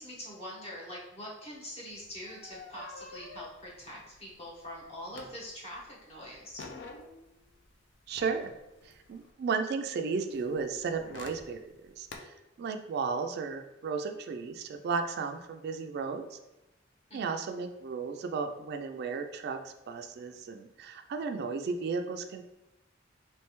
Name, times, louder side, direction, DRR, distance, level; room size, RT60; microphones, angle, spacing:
voice 1, 0.0-6.6 17.1-17.5, equal, 35° left, -4 dB, 1.0 m, -44 dB
sound 1, 1.9-5.8 6.1-9.3 10.3-12.2, left 3 dB, 65° left, 0.5 m, -49 dB
voice 2, 8.1-8.5 8.8-16.4 17.1-22.4, right 5 dB, 55° right, 7 dB, 0.3 m, -34 dB
3.2 x 3.1 x 3.0 m, 0.97 s
head